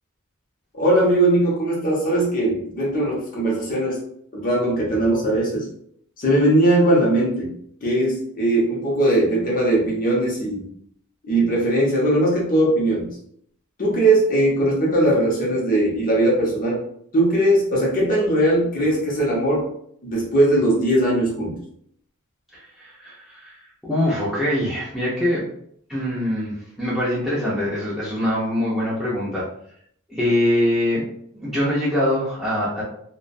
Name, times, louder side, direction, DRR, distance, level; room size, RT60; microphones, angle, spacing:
voice 1, 0.7-4.0 4.3-5.7 6.2-7.5 7.8-10.6 11.2-13.1 13.8-16.8 17.1-19.7 20.0-21.6, right 1 dB, 40° left, -4 dB, 0.7 m, -19 dB
voice 2, 22.5-25.4 25.9-29.4 30.1-31.0 31.3-32.8, left 1 dB, ahead, -9 dB, 0.5 m, -23 dB
2.3 x 2.2 x 2.5 m, 0.67 s
head